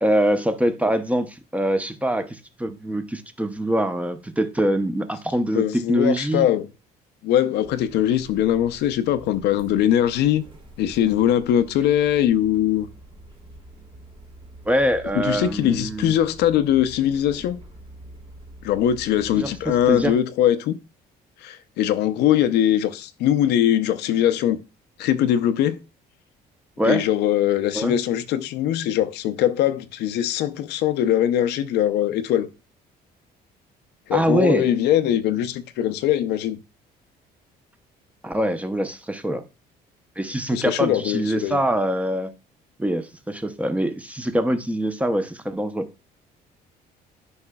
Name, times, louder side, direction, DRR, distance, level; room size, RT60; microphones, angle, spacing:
voice 1, 0.0-6.5 14.7-16.1 19.3-20.1 26.8-27.0 27.7-27.9 34.1-34.7 38.2-39.4 40.2-42.3 42.8-45.9, right 1 dB, 10° right, 0.6 m, -24 dB
voice 2, 5.5-6.7 7.2-10.4 10.8-12.9 15.2-17.6 18.6-20.8 21.4-24.6 25.0-25.8 26.8-32.5 34.1-36.6 40.5-41.6, left 11 dB, 80° left, 0.6 m, -21 dB
sound 1, 7.6-20.1, right 1 dB, 30° right, 1.5 m, -46 dB
9.7 x 5.5 x 2.3 m
cardioid pair, 110°, 17 cm